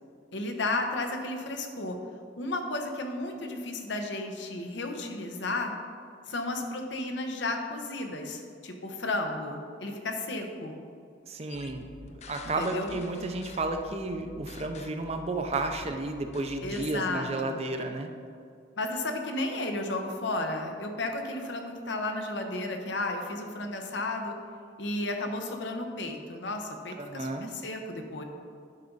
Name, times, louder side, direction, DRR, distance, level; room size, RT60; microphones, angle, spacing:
voice 1, 0.3-2.0 2.4-5.7 6.3-10.8 12.6-13.0 16.6-17.6 18.8-24.3 24.8-28.2, left 2 dB, 70° left, 4 dB, 1.0 m, -33 dB
voice 2, 11.3-11.8 12.3-18.1 27.0-27.5, right 2 dB, 35° right, 6 dB, 0.6 m, -32 dB
sound 1, 11.5-17.0, left 3 dB, 35° left, 0.4 m, -48 dB
10.5 x 5.9 x 3.9 m, 2.3 s
head